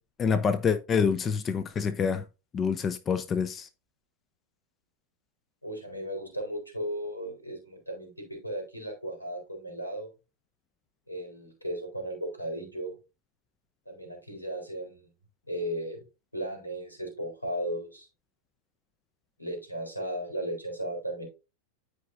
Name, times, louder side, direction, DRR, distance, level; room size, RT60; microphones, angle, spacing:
voice 1, 0.2-2.2 2.5-3.7, left 6 dB, 25° left, 0.7 m, -27 dB
voice 2, 5.6-10.1 11.1-12.9 13.9-15.0 15.5-16.0 16.3-18.1 19.4-21.2, right 1 dB, 85° left, 4.1 m, -35 dB
14.0 x 5.1 x 2.6 m
figure-of-eight pair, 90°, 0 cm